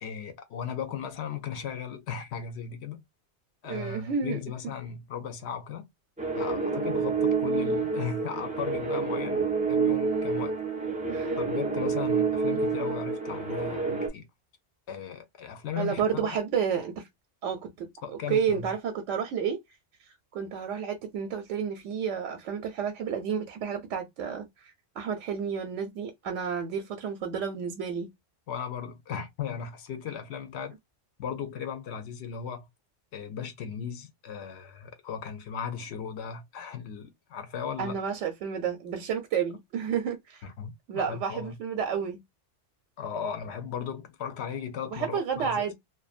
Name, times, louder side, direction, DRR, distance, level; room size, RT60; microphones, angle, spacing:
voice 1, 0.0-3.0 3.6-5.9 6.4-10.6 11.4-14.3 14.9-16.4 18.0-18.7 28.5-30.8 31.2-32.7 33.1-38.0 40.4-41.5 43.0-45.7, left 7 dB, 70° left, 0.8 m, -37 dB
voice 2, 3.7-4.4 11.0-11.4 15.8-17.1 17.4-19.6 20.3-24.5 25.0-28.1 37.8-40.4 40.9-42.2 44.9-45.7, right 7 dB, 90° right, 0.9 m, -31 dB
sound 1, 6.2-14.1, right 4 dB, 10° right, 0.3 m, -28 dB
2.5 x 2.1 x 2.3 m
omnidirectional pair, 1.2 m